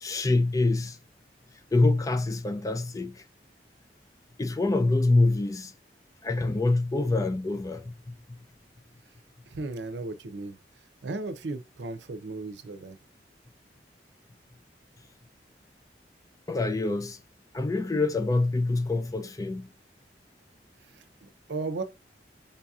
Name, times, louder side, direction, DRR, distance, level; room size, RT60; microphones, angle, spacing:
voice 1, 0.0-1.0 1.7-3.2 4.4-5.7 6.2-8.1 16.5-17.2 17.5-19.7, left 2 dB, 20° left, 0.3 m, -25 dB
voice 2, 9.5-10.6 11.0-13.0 20.9-21.8, right 3 dB, 80° right, 0.6 m, -36 dB
5.4 x 2.7 x 2.4 m
head